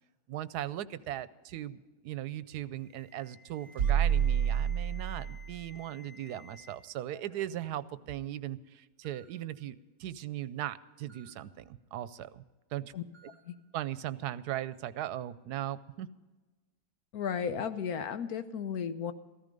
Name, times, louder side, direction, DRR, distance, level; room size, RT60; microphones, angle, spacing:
voice 1, 0.3-9.7 10.0-12.4 12.7-13.0 13.7-16.1, right 12 dB, 85° right, 15 dB, 1.2 m, -38 dB
Alarm, 2.8-6.7 7.1-7.5 8.3-8.4 9.0-9.3 11.1-11.3 13.1-13.4, left 3 dB, 25° left, 5.2 m, -56 dB
sound 1, 3.8-5.6, right 8 dB, 70° right, 1.3 m, -28 dB
voice 2, 17.1-19.1, left 7 dB, 70° left, 11 dB, 1.3 m, -34 dB
14.5 x 14.0 x 5.2 m, 1.2 s
omnidirectional pair, 1.7 m